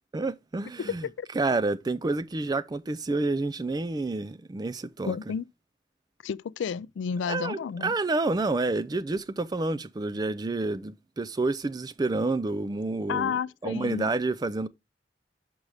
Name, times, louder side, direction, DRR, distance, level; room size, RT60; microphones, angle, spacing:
voice 1, 0.1-1.0 1.4-5.2 7.3-14.7, right 3 dB, 20° right, 0.3 m, -29 dB
voice 2, 5.1-5.5 6.2-7.9 13.1-14.1, left 6 dB, 80° left, 0.3 m, -31 dB
6.1 x 5.3 x 4.8 m
head